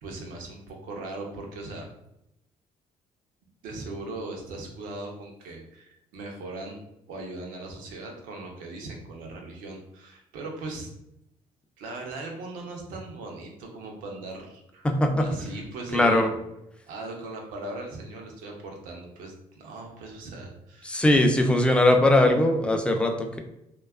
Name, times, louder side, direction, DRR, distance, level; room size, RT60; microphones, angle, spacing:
voice 1, 0.0-1.9 3.6-6.8 7.1-10.9 11.8-16.5 16.9-21.1, right 2 dB, 85° right, 1 dB, 0.6 m, -39 dB
voice 2, 14.8-15.3 15.9-16.3 20.8-23.4, left 1 dB, 10° left, 4 dB, 0.4 m, -20 dB
2.6 x 2.2 x 2.3 m, 0.83 s
supercardioid pair, 70°, 14 cm